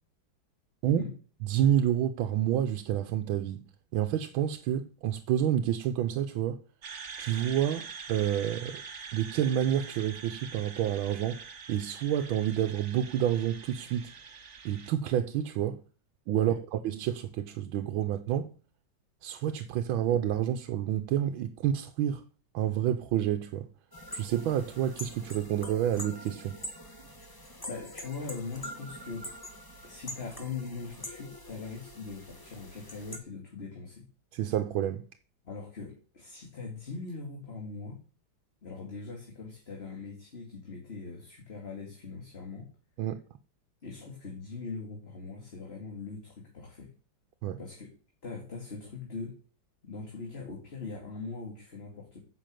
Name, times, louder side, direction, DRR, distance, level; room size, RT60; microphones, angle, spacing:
voice 1, 1.4-3.7 3.9-6.6 7.2-8.8 9.1-14.1 14.6-15.8 16.3-18.5 19.2-22.2 22.5-23.7 24.1-26.6 34.3-35.0 43.0-43.2 47.4-47.6, right 10 dB, 90° right, 1.5 m, -29 dB
sound 1, 6.8-14.9, right 5 dB, 45° right, 1.2 m, -45 dB
sound 2, 23.9-33.2, left 1 dB, 10° left, 1.3 m, -44 dB
voice 2, 27.7-29.3 29.8-34.1 35.4-38.0 38.6-42.7 43.8-46.9 47.6-47.9 48.2-49.3 49.8-52.2, left 4 dB, 30° left, 2.4 m, -41 dB
10.0 x 6.2 x 7.7 m
omnidirectional pair, 2.1 m